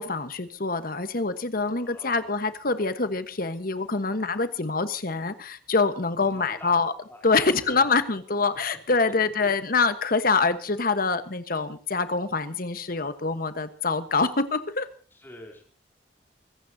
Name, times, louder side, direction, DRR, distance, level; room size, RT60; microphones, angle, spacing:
voice 1, 0.0-6.9 7.2-14.9, left 4 dB, 50° left, 11 dB, 1.3 m, -25 dB
voice 2, 1.8-2.4 6.2-6.7 7.1-8.0 15.1-15.6, left 1 dB, 15° left, 1 dB, 3.4 m, -45 dB
24.5 x 15.5 x 2.8 m, 0.39 s
head